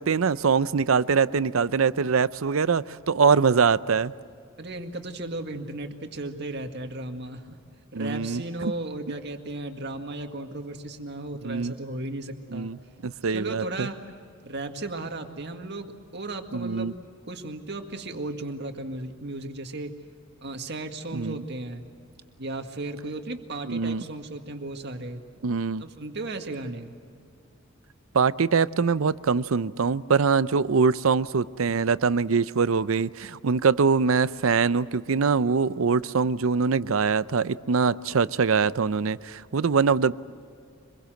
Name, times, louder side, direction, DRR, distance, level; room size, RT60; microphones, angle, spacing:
voice 1, 0.0-4.1 7.9-8.7 11.4-11.7 12.5-12.8 13.0-13.9 16.5-16.9 21.1-21.4 23.7-24.0 25.4-25.9 28.1-40.1, right 5 dB, 85° right, 16 dB, 0.6 m, -23 dB
voice 2, 4.6-7.6 7.9-12.7 13.2-14.0 14.4-17.0 17.3-20.0 20.4-21.8 22.4-25.2 25.8-27.0, right 2 dB, 55° right, 5 dB, 1.9 m, -35 dB
25.5 x 22.0 x 7.8 m, 2.3 s
head